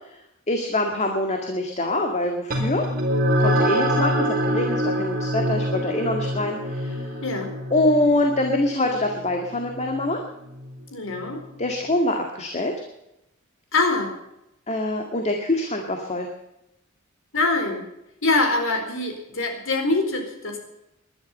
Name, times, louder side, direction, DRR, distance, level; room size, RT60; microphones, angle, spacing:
voice 1, 0.5-2.8 3.4-7.1 7.7-10.2 11.6-12.7 14.7-16.3, left 1 dB, 35° left, 3 dB, 2.1 m, -24 dB
sound 1, 2.5-11.3, equal, 45° right, 5.2 m, -26 dB
voice 2, 7.2-7.5 10.9-11.4 13.7-14.1 17.3-17.9 18.2-20.6, left 3 dB, 65° left, 4 dB, 4.3 m, -24 dB
20.0 x 11.5 x 5.6 m, 0.85 s
head